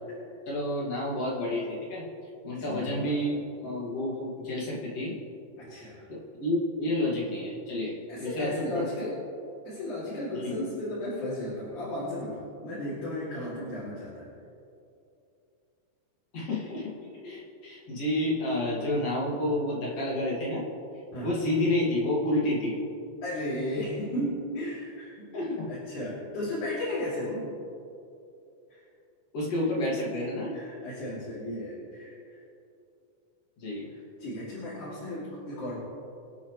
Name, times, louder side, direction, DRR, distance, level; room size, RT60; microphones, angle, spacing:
voice 1, 0.5-2.0 2.4-5.1 6.1-8.9 10.3-10.6 16.3-16.9 17.2-20.6 21.2-22.8 25.3-25.7 29.3-30.6 33.6-33.9, left 1 dB, 55° left, -4 dB, 3.2 m, -30 dB
voice 2, 2.6-3.1 5.6-6.0 8.1-9.1 9.6-14.3 21.1-21.4 23.2-25.4 25.7-27.5 28.7-28.8 30.5-32.4 34.2-35.8, left 1 dB, 85° left, -9 dB, 4.3 m, -34 dB
25.0 x 8.5 x 3.2 m, 2.7 s
omnidirectional pair, 3.4 m